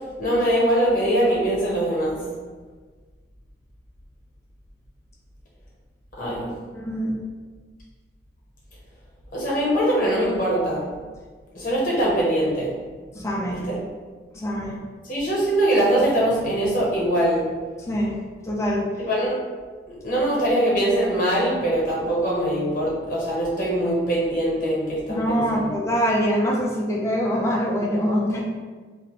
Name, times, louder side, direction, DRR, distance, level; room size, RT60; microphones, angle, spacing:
voice 1, 0.2-2.2 6.2-6.4 9.3-10.9 11.5-12.7 13.7-13.8 15.0-17.5 19.0-19.3 19.9-25.8, right 1 dB, 50° left, -5 dB, 0.9 m, -22 dB
voice 2, 6.2-7.1 13.1-13.7 14.3-14.8 17.9-18.1 18.4-18.9 25.1-28.4, equal, 15° left, -2 dB, 0.4 m, -24 dB
2.4 x 2.1 x 3.0 m, 1.4 s
head